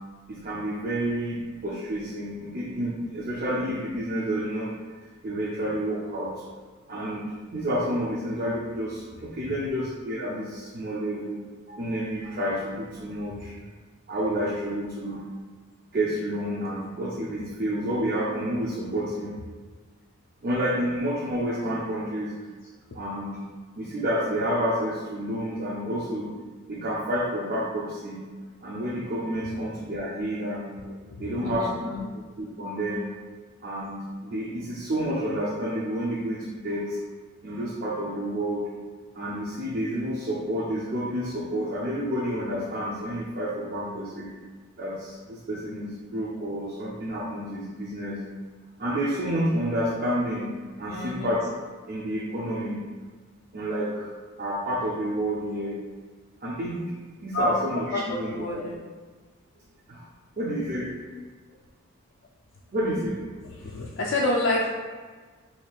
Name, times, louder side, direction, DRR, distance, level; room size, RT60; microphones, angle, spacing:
voice 1, 0.3-4.7 5.2-6.3 6.9-13.5 14.1-15.2 15.9-19.3 20.4-22.3 22.9-23.3 23.8-26.3 26.7-28.2 28.6-30.7 31.2-31.9 32.4-33.1 33.6-37.0 37.4-38.7 39.1-44.3 44.8-48.2 48.8-50.5 50.8-51.5 51.9-52.8 53.5-54.1 54.4-55.7 56.4-56.8 57.2-58.6 59.9-60.0 60.4-61.0 62.7-63.2, equal, 45° right, -5 dB, 0.5 m, -29 dB
voice 2, 30.9-32.0 50.9-51.3 57.3-57.6 57.9-58.8 63.4-64.7, left 1 dB, 65° left, -2 dB, 0.4 m, -29 dB
4.4 x 2.8 x 2.4 m, 1.4 s
head